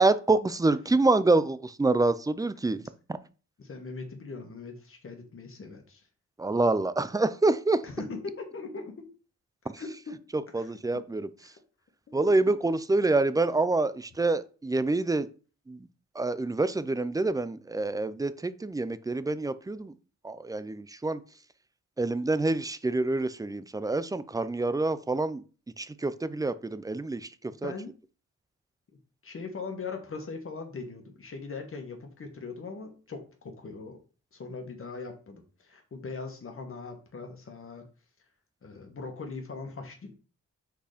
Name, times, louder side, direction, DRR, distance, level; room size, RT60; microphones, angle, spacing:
voice 1, 0.0-2.8 6.4-7.8 10.5-11.3 12.1-15.3 15.7-15.8 16.2-19.9 20.2-21.2 22.0-25.4 25.8-27.3 27.6-27.7, right 2 dB, 10° right, 14 dB, 0.5 m, -26 dB
voice 2, 3.6-6.0 7.8-9.1 9.8-10.2 10.5-11.0 11.4-11.6 12.1-12.5 27.6-27.9 29.2-34.0 34.3-37.9 38.6-40.1, left 4 dB, 45° left, 3 dB, 1.8 m, -40 dB
5.1 x 4.5 x 5.1 m, 0.36 s
cardioid pair, 85°, 29 cm